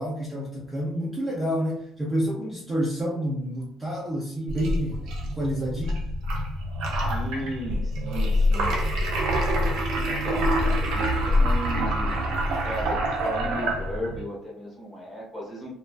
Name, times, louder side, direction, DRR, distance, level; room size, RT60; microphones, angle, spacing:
voice 1, 0.0-6.0, equal, 10° right, -4 dB, 0.4 m, -29 dB
sound 1, 4.5-14.2, equal, 80° right, 0.5 m, -25 dB
voice 2, 6.9-9.1 9.6-12.2 12.6-15.7, equal, 20° left, -4 dB, 1.0 m, -36 dB
2.3 x 2.2 x 2.4 m, 0.70 s
cardioid pair, 155°, 0 cm